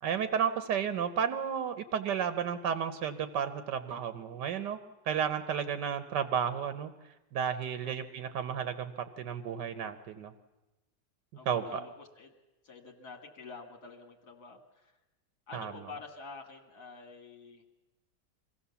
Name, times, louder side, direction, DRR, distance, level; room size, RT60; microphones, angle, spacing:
voice 1, 0.0-4.8 5.0-6.9 7.3-10.3 11.4-11.8 15.5-15.9, right 8 dB, 80° right, 10 dB, 1.6 m, -32 dB
voice 2, 11.3-12.3 12.6-14.9 15.5-17.6, left 4 dB, 65° left, 4 dB, 2.5 m, -48 dB
24.0 x 16.0 x 7.0 m, 1.0 s
omnidirectional pair, 1.8 m